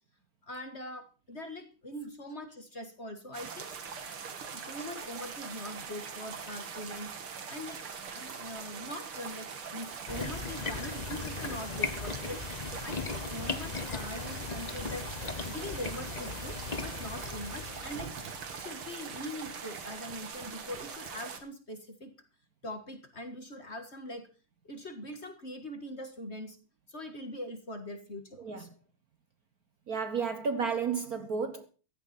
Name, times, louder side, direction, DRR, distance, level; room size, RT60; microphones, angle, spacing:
voice 1, 0.4-3.7 4.5-7.1 7.5-7.8 8.1-15.1 15.5-22.1 22.6-24.3 24.6-26.6 26.9-28.7, left 1 dB, 35° left, 1.8 m, -42 dB
sound 1, 3.3-21.4, right 6 dB, 75° right, 2.7 m, -42 dB
sound 2, 10.1-18.2, left 4 dB, 55° left, 0.4 m, -38 dB
voice 2, 29.9-31.7, right 5 dB, 50° right, 1.4 m, -32 dB
16.0 x 12.5 x 4.3 m
omnidirectional pair, 2.4 m